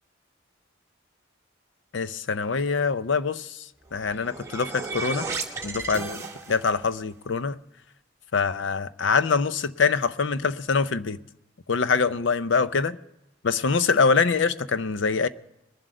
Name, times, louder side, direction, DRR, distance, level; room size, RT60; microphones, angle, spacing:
voice 1, 1.9-5.3 5.6-7.6 8.3-11.2 11.7-13.0 13.4-15.3, left 5 dB, 75° left, 0.6 m, -24 dB
sound 1, 3.9-6.9, right 3 dB, 15° right, 1.1 m, -34 dB
21.0 x 7.7 x 5.0 m
head